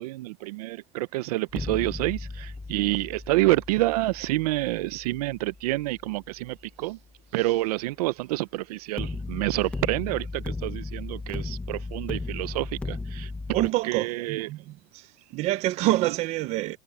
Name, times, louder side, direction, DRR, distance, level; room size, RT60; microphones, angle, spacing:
voice 1, 0.0-7.0 7.3-14.5, right 19 dB, 75° right, 0.6 m, -28 dB
sound 1, 1.5-6.6 9.0-13.7, left 3 dB, 5° left, 0.7 m, -36 dB
voice 2, 13.5-15.0 15.3-16.8, right 17 dB, 35° right, 0.8 m, -27 dB
supercardioid pair, 175°, 20 cm